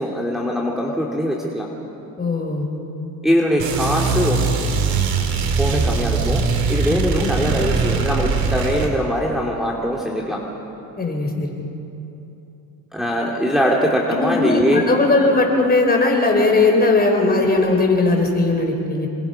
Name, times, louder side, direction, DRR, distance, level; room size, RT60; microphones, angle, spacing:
voice 1, 0.0-1.7 3.2-4.6 5.6-6.4 6.7-10.4 12.9-14.8, equal, ahead, -3 dB, 2.7 m, -21 dB
voice 2, 2.2-2.7 7.4-7.6 11.0-11.6 14.1-19.1, left 3 dB, 25° left, 2 dB, 4.6 m, -18 dB
sound 1, 3.6-8.9, right 5 dB, 75° right, 2.7 m, -21 dB
28.0 x 22.0 x 5.8 m, 2.9 s
cardioid pair, 110°, 36 cm